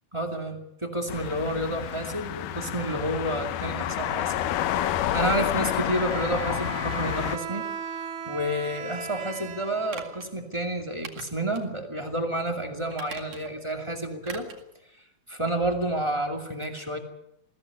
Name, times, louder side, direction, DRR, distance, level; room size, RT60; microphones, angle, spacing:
voice 1, 0.1-4.5 5.1-7.6 8.3-14.5 15.3-17.0, right 1 dB, 10° right, 4 dB, 2.0 m, -30 dB
sound 1, 1.1-7.4, left 12 dB, 85° left, 2.5 m, -29 dB
Bowed string instrument, 5.6-10.6, right 6 dB, 80° right, 3.1 m, -37 dB
sound 2, 9.9-10.3 11.0-11.7 12.1-12.2 12.9-13.6 14.2-14.7 15.0-15.1, right 7 dB, 65° right, 3.4 m, -42 dB
21.5 x 16.0 x 8.3 m, 0.80 s
omnidirectional pair, 3.6 m